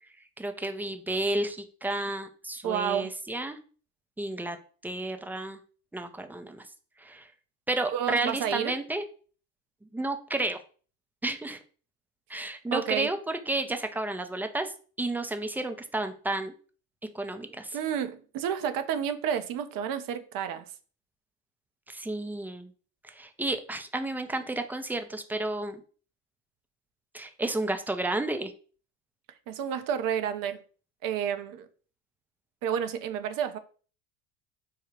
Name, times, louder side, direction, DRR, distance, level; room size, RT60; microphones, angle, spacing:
voice 1, 0.4-3.6 4.2-4.6 4.8-5.6 5.9-6.6 7.0-7.3 7.7-9.0 9.9-10.6 11.2-11.6 12.3-16.5 17.1-17.8 21.9-22.7 23.0-25.8 27.1-28.5, right 2 dB, 5° right, 0.5 m, -32 dB
voice 2, 2.6-3.1 7.9-8.7 12.7-13.1 17.7-20.6 29.5-30.6 31.0-31.7 32.6-33.6, right 9 dB, 55° right, 0.8 m, -30 dB
4.8 x 2.3 x 3.1 m
hypercardioid pair, 70°, 41 cm